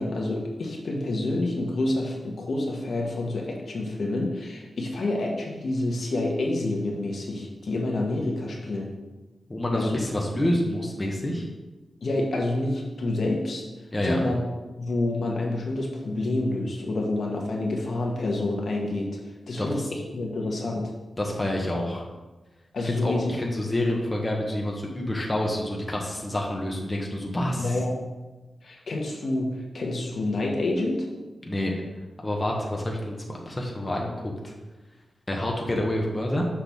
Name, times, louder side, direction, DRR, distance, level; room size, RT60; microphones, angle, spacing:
voice 1, 0.0-8.9 9.7-9.9 12.0-13.6 14.0-14.4 14.8-19.1 19.5-20.9 22.7-23.3 27.6-28.0 28.6-31.1, left 2 dB, 65° left, -1 dB, 1.2 m, -28 dB
voice 2, 9.5-11.4 13.9-14.2 19.6-19.8 21.2-22.0 22.8-27.7 31.5-31.7 32.2-34.1 34.4-34.5 35.3-36.4, left 1 dB, 20° left, -1 dB, 1.0 m, -28 dB
6.0 x 5.8 x 3.5 m, 1.2 s
wide cardioid pair, 100°, 0 cm